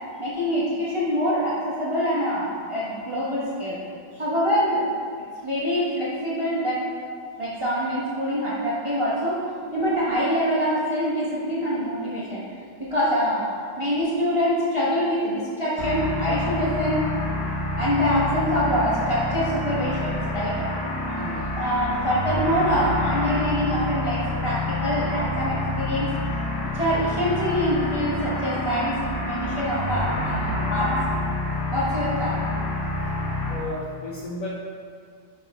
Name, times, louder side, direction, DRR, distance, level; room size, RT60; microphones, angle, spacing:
voice 1, 0.2-3.8 4.2-4.8 5.4-6.8 7.4-9.4 9.7-12.4 12.8-13.5 13.8-17.1 17.8-20.7 21.5-26.1 26.6-30.9 31.7-32.4, equal, 25° right, -8 dB, 0.7 m, -25 dB
voice 2, 9.6-9.9 21.1-21.4 33.5-34.5, left 1 dB, 55° left, -5 dB, 1.0 m, -34 dB
sound 1, 15.8-33.6, left 2 dB, 70° left, 1.9 m, -28 dB
5.3 x 5.0 x 4.9 m, 2.2 s
omnidirectional pair, 2.1 m